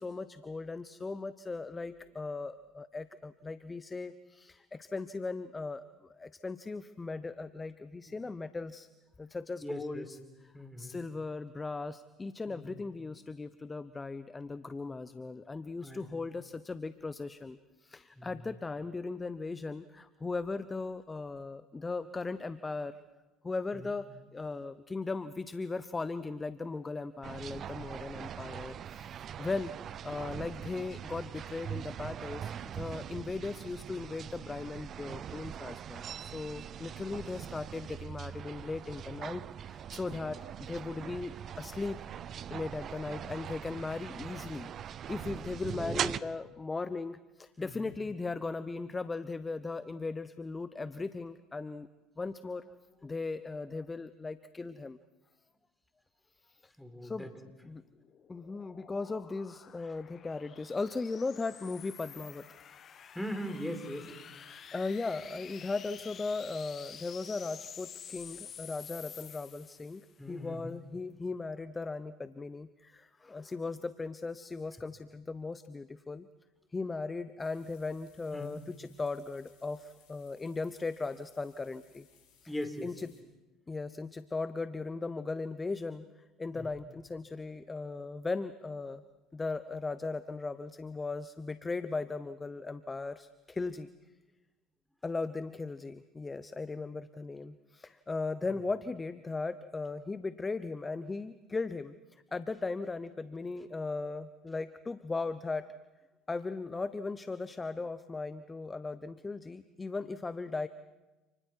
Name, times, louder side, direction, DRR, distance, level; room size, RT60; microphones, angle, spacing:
voice 1, 0.0-8.9 9.2-10.0 10.8-22.9 23.4-42.0 42.5-51.9 52.2-52.7 53.0-55.0 56.5-56.7 57.0-57.3 57.6-57.8 58.3-62.4 64.5-76.3 76.7-82.1 82.4-82.5 82.8-83.1 83.7-89.0 89.3-93.9 95.0-105.7 106.3-110.7, left 3 dB, 20° left, 13 dB, 0.9 m, -38 dB
voice 2, 9.6-10.1 10.5-11.0 12.5-12.8 15.8-16.1 18.2-18.3 23.7-23.9 44.4-44.5 45.7-46.1 47.6-47.9 56.8-57.3 63.1-64.1 70.2-70.8 78.3-78.6 82.5-83.0 86.6-86.7 98.5-98.6, equal, 5° left, 6 dB, 4.1 m, -40 dB
sound 1, 27.2-46.2, right 9 dB, 50° right, 0.7 m, -41 dB
sound 2, 57.6-70.1, left 8 dB, 45° left, 1.6 m, -50 dB
sound 3, 77.4-83.2, left 8 dB, 65° left, 7.4 m, -66 dB
29.5 x 29.0 x 4.7 m, 1.1 s
hypercardioid pair, 70°, 0 cm